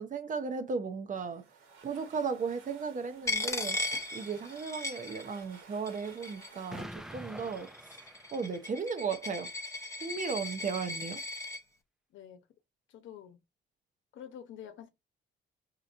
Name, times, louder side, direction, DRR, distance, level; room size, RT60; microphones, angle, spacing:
voice 1, 0.0-1.4 1.8-3.8 4.1-8.0 8.3-9.5 10.0-11.2, right 5 dB, 40° right, 0.7 m, -35 dB
sound 1, 1.2-8.6, right 5 dB, 80° right, 1.3 m, -57 dB
Coin (dropping), 3.3-5.6 5.9-6.7 7.4-11.6, left 2 dB, 15° left, 0.8 m, -37 dB
Explosion, 6.7-8.9, equal, ahead, 0.4 m, -46 dB
voice 2, 12.1-12.5 12.9-13.4 14.1-14.9, left 9 dB, 75° left, 0.9 m, -48 dB
4.8 x 2.9 x 2.5 m
cardioid pair, 90°, 20 cm